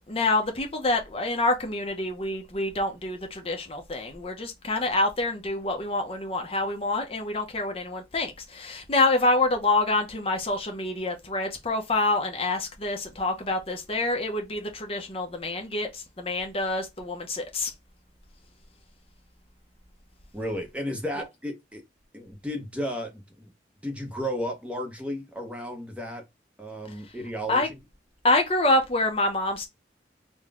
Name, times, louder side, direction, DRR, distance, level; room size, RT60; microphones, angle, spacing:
voice 1, 0.1-17.7 27.5-27.7 28.2-29.7, left 2 dB, 30° left, 0.7 m, -26 dB
voice 2, 20.3-21.8 22.1-23.5 23.8-26.2 26.6-27.8, equal, 5° right, 0.8 m, -33 dB
3.9 x 2.2 x 3.5 m
head